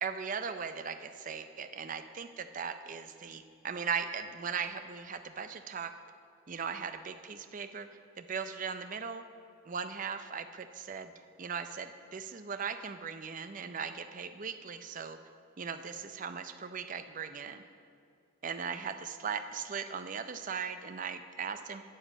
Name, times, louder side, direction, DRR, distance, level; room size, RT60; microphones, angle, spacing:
voice 1, 0.0-5.9 6.5-7.9 8.2-9.2 9.7-11.1 11.4-15.2 15.6-17.6 18.4-21.8, right 6 dB, 40° right, 9 dB, 0.5 m, -38 dB
10.0 x 5.5 x 8.2 m, 2.3 s
head